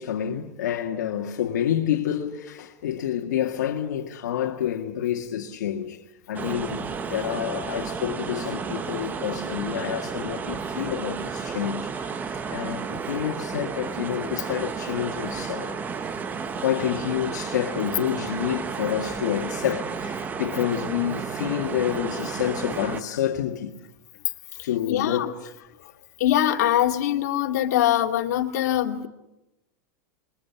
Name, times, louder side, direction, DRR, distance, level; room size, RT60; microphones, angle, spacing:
voice 1, 0.0-6.0 6.3-15.8 16.6-23.8 24.6-25.5, left 10 dB, 85° left, 2.0 m, -28 dB
sound 1, 6.3-23.0, right 5 dB, 20° right, 1.2 m, -32 dB
voice 2, 24.9-25.3 26.2-29.1, left 12 dB, 70° left, 2.4 m, -23 dB
27.5 x 22.5 x 8.3 m
supercardioid pair, 145°, 9 cm